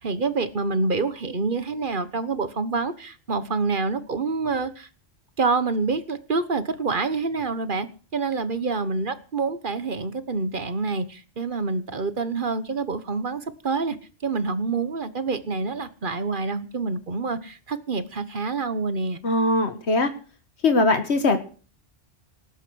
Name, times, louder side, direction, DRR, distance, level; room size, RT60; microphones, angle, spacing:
voice 1, 0.0-4.9 5.4-7.9 8.1-14.0 14.2-19.2, right 4 dB, 50° right, 12 dB, 1.3 m, -27 dB
voice 2, 19.2-20.1 20.6-21.4, left 2 dB, 75° left, 8 dB, 1.8 m, -21 dB
19.0 x 8.9 x 6.3 m, 0.39 s
omnidirectional pair, 1.1 m